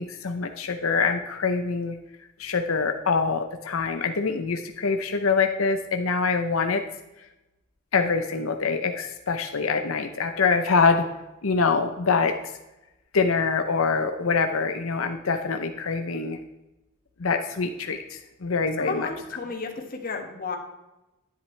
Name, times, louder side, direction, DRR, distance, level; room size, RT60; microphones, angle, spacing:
voice 1, 0.0-1.9 2.4-6.8 7.9-11.1 11.4-12.3 13.1-16.4 17.2-19.1, left 4 dB, 90° left, 6 dB, 0.7 m, -25 dB
voice 2, 18.8-20.6, left 4 dB, 45° left, 3 dB, 1.7 m, -32 dB
11.0 x 10.0 x 3.3 m, 1.0 s
head